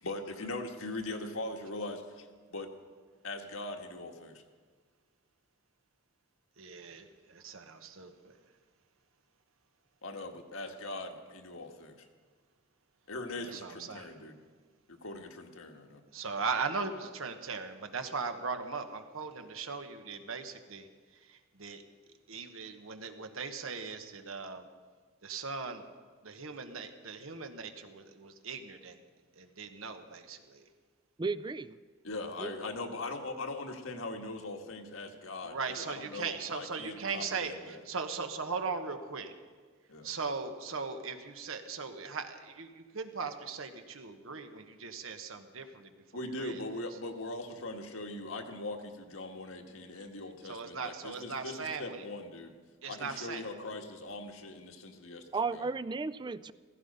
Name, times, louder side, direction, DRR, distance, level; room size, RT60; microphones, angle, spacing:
voice 1, 0.0-2.7 3.2-4.4 10.0-11.9 13.1-14.4 14.9-16.0 32.0-37.8 39.9-40.1 46.1-52.5 52.9-55.2 55.5-55.7, left 2 dB, 85° left, 3 dB, 1.6 m, -41 dB
voice 2, 6.6-8.4 13.4-14.1 16.1-20.9 21.3-21.8 22.3-24.7 25.2-25.8 26.2-29.0 29.4-30.6 35.4-39.3 40.0-45.9 46.2-46.6 50.5-52.0 52.8-53.4, right 4 dB, 85° right, 7 dB, 1.3 m, -39 dB
voice 3, 31.2-31.8 32.4-32.5 55.3-56.5, right 4 dB, 20° right, 16 dB, 0.3 m, -34 dB
16.0 x 15.5 x 5.5 m, 1.5 s
head